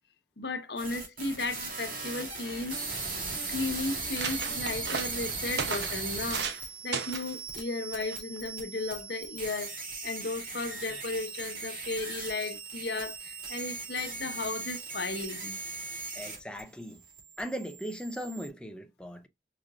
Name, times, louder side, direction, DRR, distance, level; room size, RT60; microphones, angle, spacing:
voice 1, 0.4-2.8 3.5-6.5 6.8-9.7 10.0-15.6, left 3 dB, 75° left, 1.0 m, -35 dB
sound 1, 0.8-16.6 16.9-18.5, right 3 dB, 50° right, 2.3 m, -38 dB
sound 2, 2.4-3.0 3.6-3.7 3.9-6.6 6.9-7.3 8.1-8.4, right 6 dB, 80° right, 0.7 m, -36 dB
voice 2, 16.1-17.0 17.4-19.3, equal, 5° left, 0.4 m, -38 dB
5.0 x 3.8 x 2.4 m
head